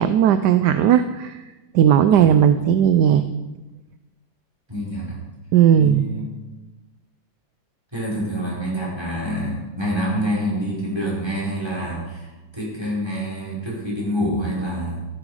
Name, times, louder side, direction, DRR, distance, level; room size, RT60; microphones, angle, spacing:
voice 1, 0.0-1.4 1.7-3.3 5.5-6.1, right 9 dB, 70° right, 11 dB, 1.1 m, -16 dB
voice 2, 4.7-5.2 5.7-6.3 7.9-15.0, equal, 10° right, -5 dB, 5.2 m, -27 dB
13.5 x 13.0 x 4.9 m, 1.1 s
omnidirectional pair, 2.1 m